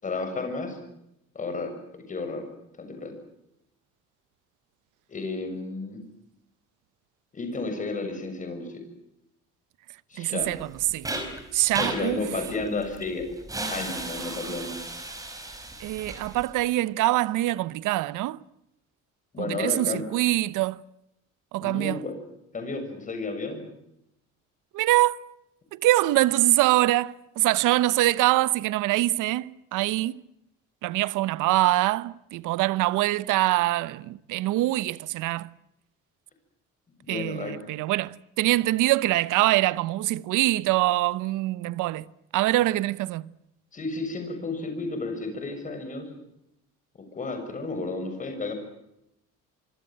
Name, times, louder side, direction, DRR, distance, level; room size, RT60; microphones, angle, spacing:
voice 1, 0.0-0.8 1.3-1.7 2.1-2.4 2.8-3.1 5.1-6.0 7.3-8.8 10.1-10.5 11.7-13.2 13.7-14.8 19.3-20.1 21.6-22.1 22.5-23.6 37.0-37.5 43.7-46.1 47.1-48.5, left 3 dB, 25° left, 6.8 m, -32 dB
voice 2, 10.2-11.1 11.5-12.3 14.2-14.6 15.8-18.4 19.4-20.8 21.5-22.0 24.7-25.2 25.7-30.2 30.8-35.5 37.1-43.3, right 17 dB, 80° right, 0.9 m, -24 dB
sound 1, 10.4-16.5, right 2 dB, 10° right, 5.0 m, -35 dB
25.5 x 25.5 x 7.6 m
cardioid pair, 165°, 31 cm